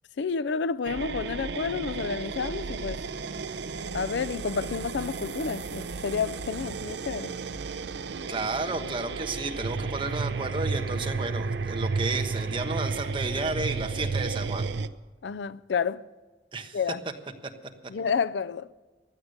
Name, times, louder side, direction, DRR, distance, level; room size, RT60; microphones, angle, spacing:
voice 1, 0.2-3.0 3.9-7.3 15.2-16.1 16.7-17.0 17.9-18.7, left 5 dB, 80° left, 0.5 m, -30 dB
sound 1, 0.9-14.9, right 4 dB, 70° right, 0.6 m, -33 dB
voice 2, 8.3-14.7 16.5-16.8, right 3 dB, 30° right, 1.3 m, -32 dB
16.0 x 11.5 x 6.6 m
head